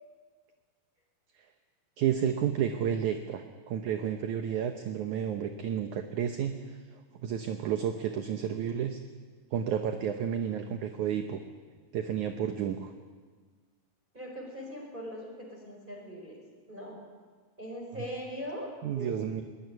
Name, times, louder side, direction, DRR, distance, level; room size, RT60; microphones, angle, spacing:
voice 1, 2.0-6.6 7.2-9.0 9.5-11.4 11.9-12.9 18.8-19.4, right 9 dB, 70° right, 6 dB, 2.0 m, -31 dB
voice 2, 14.1-16.4 16.7-17.0 17.6-19.1, equal, 10° right, 0 dB, 5.0 m, -40 dB
22.0 x 19.5 x 9.5 m, 1.5 s
omnidirectional pair, 4.7 m